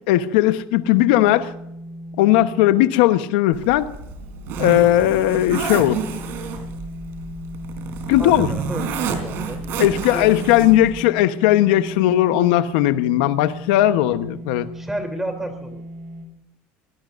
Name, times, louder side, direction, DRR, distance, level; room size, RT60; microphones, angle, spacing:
voice 1, 0.1-1.5 2.2-3.9 4.6-6.0 8.1-8.5 9.8-14.7, left 14 dB, 85° left, 11 dB, 1.0 m, -17 dB
sound 1, 0.8-16.2, equal, 85° right, 6.3 m, -37 dB
Zipper (clothing), 3.5-10.9, right 6 dB, 55° right, 3.9 m, -30 dB
voice 2, 8.2-9.6 10.1-10.3 14.7-15.8, right 1 dB, 5° right, 6 dB, 3.2 m, -31 dB
23.0 x 18.0 x 2.6 m, 0.77 s
cardioid pair, 145°, 5 cm